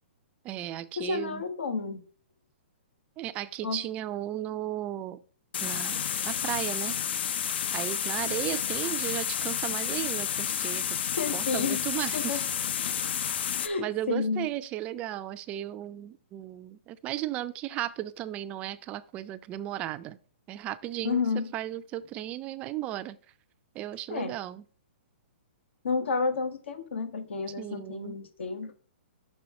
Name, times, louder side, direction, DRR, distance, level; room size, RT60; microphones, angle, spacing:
voice 1, 0.4-1.4 3.2-5.2 5.6-7.0 7.7-10.9 11.3-12.4 13.2-20.2 20.5-23.2 23.7-24.6 27.6-28.2, right 13 dB, 20° right, 0.4 m, -35 dB
voice 2, 1.0-2.0 3.6-3.8 11.2-11.8 12.1-12.4 13.6-14.5 21.0-21.5 24.1-24.3 25.8-28.7, left 5 dB, 80° left, 1.2 m, -31 dB
sound 1, 5.5-13.7, left 8 dB, 65° left, 0.5 m, -30 dB
5.6 x 5.4 x 4.3 m
hypercardioid pair, 150°, 6 cm